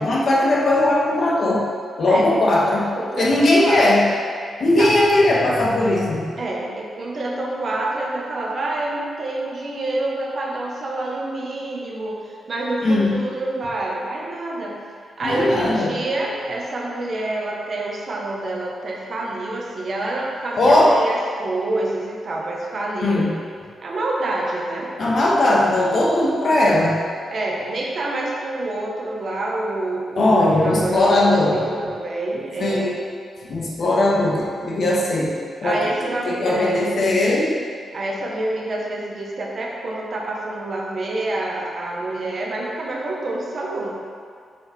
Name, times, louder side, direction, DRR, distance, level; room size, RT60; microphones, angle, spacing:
voice 1, 0.0-1.7 2.0-2.9 3.2-4.1 4.6-6.2 12.8-13.2 15.2-16.0 20.6-21.0 23.0-23.3 25.0-27.0 30.2-31.6 32.6-32.9 33.4-35.9 36.2-37.6, left 1 dB, 55° left, -4 dB, 1.3 m, -18 dB
voice 2, 2.1-2.4 2.9-4.1 4.8-4.9 6.4-14.8 15.2-23.3 23.8-24.9 27.3-32.9 35.6-36.9 37.9-43.9, right 2 dB, 50° right, -2 dB, 1.2 m, -27 dB
7.2 x 5.0 x 4.4 m, 2.1 s
cardioid pair, 115°, 0 cm